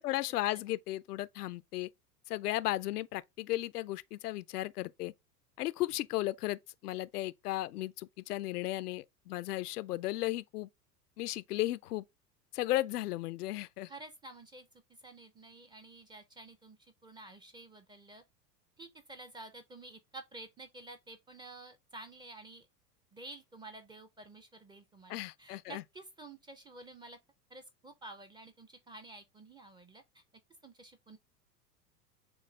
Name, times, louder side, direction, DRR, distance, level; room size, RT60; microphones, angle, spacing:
voice 1, 0.0-1.9 2.3-5.1 5.6-10.7 11.2-12.0 12.5-13.9 25.1-25.8, left 16 dB, 70° left, 0.5 m, -35 dB
voice 2, 13.9-18.2 18.8-22.7 23.1-27.2 27.5-30.2 30.6-31.2, right 2 dB, 10° right, 0.5 m, -51 dB
6.8 x 2.4 x 3.2 m
hypercardioid pair, 90°, 49 cm